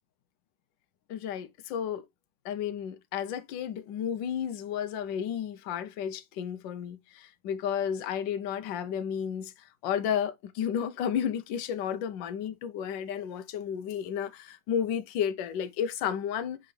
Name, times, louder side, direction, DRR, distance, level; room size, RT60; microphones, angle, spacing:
voice 1, 1.1-2.0 2.4-9.5 9.8-16.6, left 8 dB, 75° left, 1.4 m, -32 dB
7.9 x 3.9 x 3.2 m
omnidirectional pair, 2.0 m